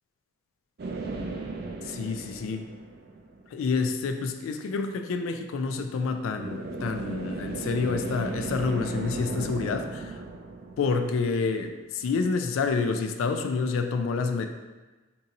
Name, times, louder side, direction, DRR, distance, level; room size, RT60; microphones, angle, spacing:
sound 1, 0.8-3.6 6.4-11.8, right 2 dB, 50° right, 0.3 m, -36 dB
voice 1, 1.8-2.7 3.5-10.2 10.8-14.5, left 4 dB, 90° left, 7 dB, 0.3 m, -28 dB
3.9 x 2.7 x 2.6 m, 1.2 s
head